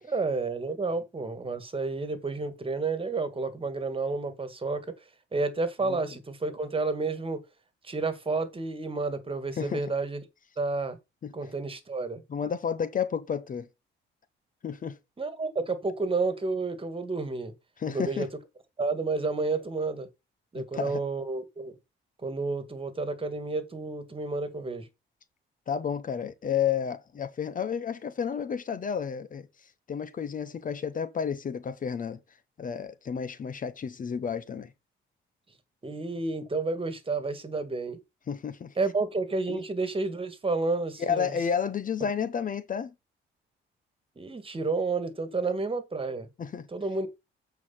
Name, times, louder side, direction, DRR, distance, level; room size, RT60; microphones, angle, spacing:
voice 1, 0.0-4.9 5.3-7.4 7.8-10.2 10.6-11.0 11.3-12.2 15.2-17.5 17.9-18.3 18.8-20.1 20.5-21.7 22.2-24.9 35.8-38.0 38.8-41.3 44.2-46.3 46.7-47.2, right 3 dB, 25° right, 1.9 m, -30 dB
voice 2, 12.3-13.7 14.6-15.0 17.8-18.3 20.5-21.0 25.7-29.5 29.9-32.2 32.6-34.7 38.3-38.7 39.5-39.6 41.0-42.9 46.4-46.7, left 7 dB, 45° left, 0.8 m, -31 dB
8.1 x 4.7 x 5.6 m
cardioid pair, 90°, 20 cm